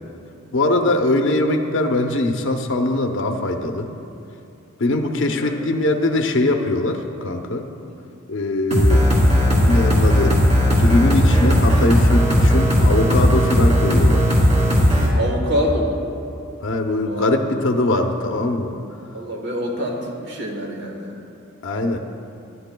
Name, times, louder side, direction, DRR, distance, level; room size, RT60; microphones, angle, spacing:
voice 1, 0.5-3.9 4.8-7.6 8.3-9.0 9.7-10.4 10.8-14.3 16.6-18.7 21.6-22.0, left 2 dB, 60° left, 4 dB, 0.7 m, -21 dB
voice 2, 5.1-5.6 7.9-8.0 15.2-16.0 17.0-17.4 19.1-21.2, equal, 55° right, 0 dB, 1.3 m, -26 dB
sound 1, 8.7-15.1, equal, 35° right, 2.3 m, -16 dB
18.5 x 11.0 x 2.2 m, 2.6 s
head